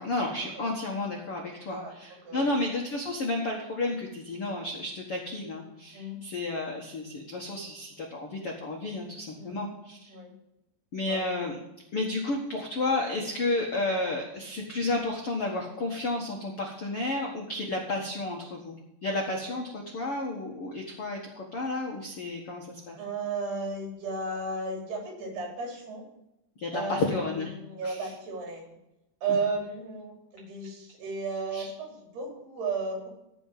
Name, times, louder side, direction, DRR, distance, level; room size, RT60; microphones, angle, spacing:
voice 1, 0.0-10.1 10.9-11.6 11.9-23.0 26.6-27.5 27.8-28.1 31.5-31.7, left 2 dB, 70° left, 0 dB, 1.3 m, -32 dB
voice 2, 1.6-1.9 2.3-2.6 5.9-6.2 9.3-9.6 10.1-10.3 11.0-11.2 23.0-26.0 26.7-27.3 27.5-28.6 29.2-33.1, right 3 dB, 60° right, 1 dB, 5.3 m, -34 dB
15.0 x 5.5 x 7.4 m, 0.88 s
omnidirectional pair, 5.3 m